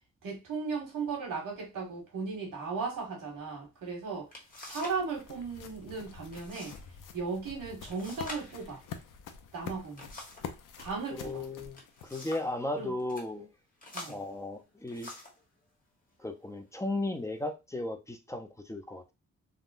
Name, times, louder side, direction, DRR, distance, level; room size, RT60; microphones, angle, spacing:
voice 1, 0.2-4.3 4.6-6.7 7.1-8.8 9.5-10.1 10.8-11.4 12.8-12.9 13.9-14.2, right 4 dB, 90° right, 1.6 m, -36 dB
sound 1, 3.8-3.9 4.3-5.1 5.3-5.8 6.3-6.8 7.1-7.2 7.9-10.5 11.5-12.6 13.0-13.3 13.8-15.4 16.2-16.4 16.9-17.4, left 2 dB, 25° left, 1.1 m, -47 dB
sound 2, 4.1-12.6, left 7 dB, 85° left, 0.5 m, -47 dB
voice 2, 11.1-13.5 14.1-15.1 16.2-19.1, left 2 dB, 10° left, 0.4 m, -36 dB
3.6 x 2.1 x 2.4 m
cardioid pair, 100°, 31 cm